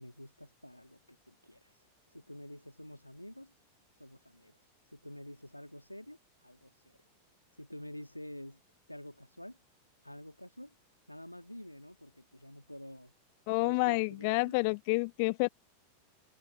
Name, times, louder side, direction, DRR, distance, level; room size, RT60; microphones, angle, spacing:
voice 1, 0.0-1.7 2.1-3.5 4.0-4.6 4.9-6.2 6.4-7.0 7.6-8.6 8.9-9.6 10.0-10.7 11.1-13.1 13.5-14.5, left 1 dB, 90° left, 2.4 m, -48 dB
voice 2, 13.5-15.5, left 32 dB, 45° left, 0.7 m, -29 dB
figure-of-eight pair, 90°, 0 cm